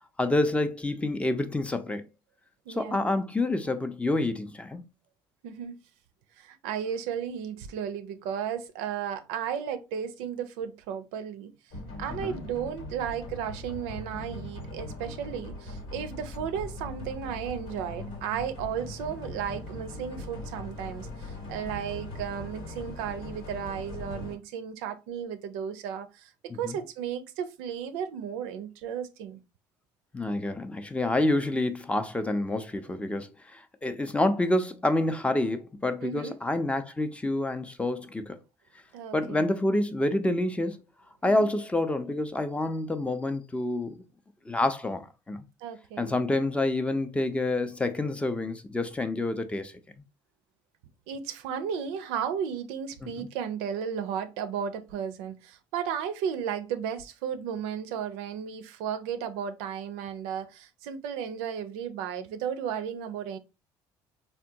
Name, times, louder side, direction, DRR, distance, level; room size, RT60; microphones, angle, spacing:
voice 1, 0.2-2.1 2.7-4.8 12.1-12.4 26.5-26.8 30.1-38.4 39.1-40.8 41.2-44.0 44.5-45.4 46.0-49.7 53.0-53.3, left 2 dB, 10° left, 0.4 m, -28 dB
voice 2, 2.7-3.1 5.4-5.8 6.4-11.5 12.0-26.3 26.6-29.4 36.0-36.4 38.9-39.4 41.2-41.4 45.6-46.2 51.1-63.4, right 8 dB, 90° right, 0.4 m, -34 dB
sound 1, 11.7-24.3, left 1 dB, 90° left, 1.3 m, -40 dB
3.5 x 2.2 x 2.6 m
supercardioid pair, 95°, 10 cm